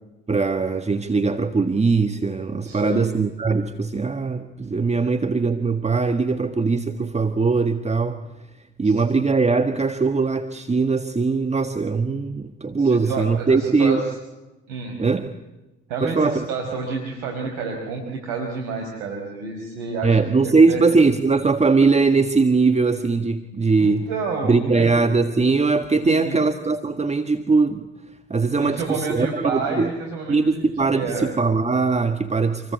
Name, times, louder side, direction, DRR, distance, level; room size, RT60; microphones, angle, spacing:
voice 1, 0.3-8.2 8.8-14.0 15.0-15.3 16.0-16.5 20.0-24.1 24.4-27.9 28.3-29.9 30.3-32.7, right 4 dB, 20° right, 8 dB, 1.7 m, -20 dB
voice 2, 2.7-3.1 8.8-8.9 12.8-14.0 14.7-15.0 15.9-20.8 23.8-24.9 26.0-26.4 28.6-30.6 30.9-31.3, right 4 dB, 75° right, 2 dB, 5.1 m, -29 dB
27.5 x 23.0 x 8.3 m, 1.0 s
hypercardioid pair, 60°, 32 cm